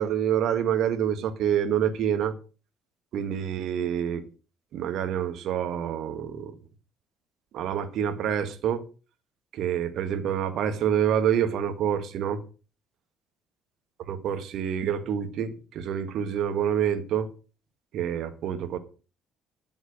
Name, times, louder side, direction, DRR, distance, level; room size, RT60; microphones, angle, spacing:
voice 1, 0.0-2.3 3.1-4.3 4.7-6.5 7.5-8.8 9.5-12.4 14.1-17.3 17.9-18.8, right 9 dB, 55° right, 1.8 m, -27 dB
13.0 x 7.2 x 6.5 m
figure-of-eight pair, 50°, 0 cm